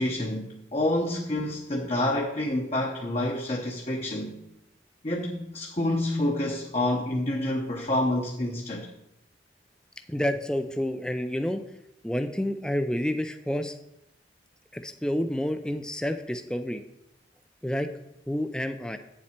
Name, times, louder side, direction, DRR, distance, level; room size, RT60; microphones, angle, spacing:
voice 1, 0.0-4.4 5.0-8.9, left 1 dB, 35° left, 0 dB, 0.9 m, -28 dB
voice 2, 10.1-11.7 12.0-13.8 14.7-16.8 17.6-17.9 18.3-19.0, equal, 5° left, 8 dB, 0.4 m, -29 dB
8.7 x 7.3 x 4.4 m, 0.85 s
head